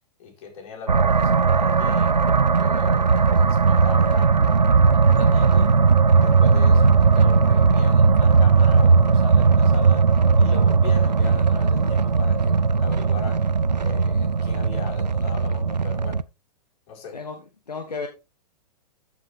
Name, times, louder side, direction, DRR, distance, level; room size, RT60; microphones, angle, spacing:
voice 1, 0.2-4.3 5.0-5.7 6.1-10.0 10.4-13.4 13.8-16.2 16.9-17.2, left 5 dB, 40° left, -1 dB, 4.9 m, -39 dB
sound 1, 0.9-16.2, right 5 dB, 90° right, 0.5 m, -18 dB
voice 2, 17.7-18.1, left 4 dB, 75° left, 4 dB, 1.4 m, -32 dB
13.0 x 5.6 x 3.4 m, 0.27 s
figure-of-eight pair, 110°, 21 cm